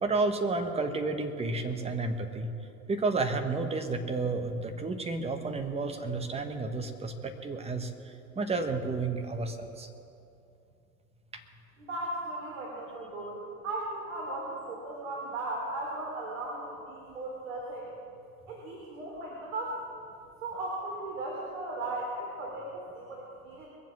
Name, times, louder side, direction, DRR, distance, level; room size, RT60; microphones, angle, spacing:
voice 1, 0.0-2.5 2.9-7.9 8.3-9.9 11.3-11.4, right 3 dB, 15° right, 6 dB, 1.3 m, -31 dB
voice 2, 11.8-17.9 18.5-19.8 20.4-23.7, right 2 dB, 60° right, -3 dB, 3.6 m, -37 dB
22.5 x 7.5 x 7.3 m, 2.7 s
figure-of-eight pair, 95°, 43 cm